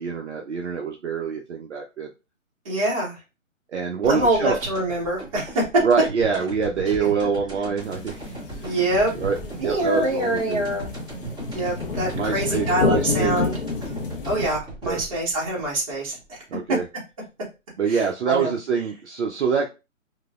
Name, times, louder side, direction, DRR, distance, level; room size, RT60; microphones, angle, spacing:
voice 1, 0.0-2.1 3.7-4.6 5.8-8.6 9.2-10.7 12.2-13.4 14.8-15.0 16.5-16.8 17.8-19.7, right 6 dB, 60° right, 1 dB, 0.5 m, -25 dB
voice 2, 2.6-3.1 4.1-5.6 8.6-9.1 9.6-10.9 11.5-13.5 14.2-16.4 17.9-18.5, right 1 dB, 25° right, -4 dB, 0.9 m, -25 dB
sound 1, 4.0-16.8, right 2 dB, ahead, 0.7 m, -38 dB
sound 2, 7.8-14.5, left 4 dB, 45° left, 0.4 m, -29 dB
3.1 x 2.1 x 2.3 m, 0.27 s
hypercardioid pair, 155°, 41 cm